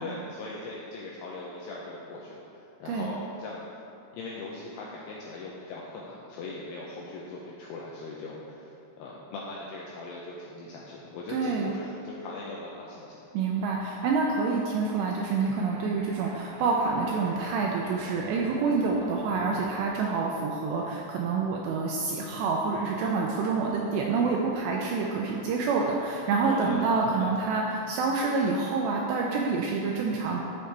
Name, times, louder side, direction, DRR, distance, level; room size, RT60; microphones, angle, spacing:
voice 1, 0.0-3.6 4.1-8.7 9.0-13.2 26.4-26.9 27.1-27.3, left 3 dB, 85° left, -4 dB, 2.4 m, -40 dB
voice 2, 11.3-11.8 13.3-30.4, right 4 dB, 85° right, -1 dB, 2.5 m, -27 dB
sound 1, 13.4-19.9, right 1 dB, 60° right, 2.8 m, -45 dB
12.5 x 6.5 x 3.3 m, 2.7 s
omnidirectional pair, 5.5 m